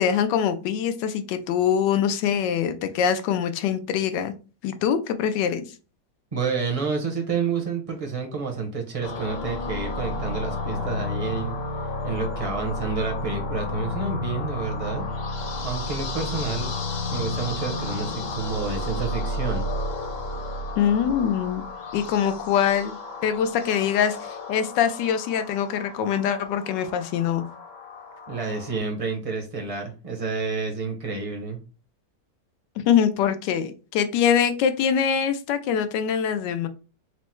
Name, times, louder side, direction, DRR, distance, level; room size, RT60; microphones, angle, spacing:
voice 1, 0.0-4.3 4.6-5.7 20.8-21.7 21.9-23.0 23.2-27.4 32.8-36.7, left 8 dB, 90° left, 10 dB, 1.2 m, -23 dB
voice 2, 6.3-11.5 12.0-15.1 15.6-16.7 17.1-19.7 28.3-31.6, right 4 dB, 35° right, 1 dB, 0.6 m, -29 dB
sound 1, 9.0-28.8, left 2 dB, 65° left, 1.3 m, -32 dB
4.5 x 2.0 x 4.3 m, 0.34 s
omnidirectional pair, 1.8 m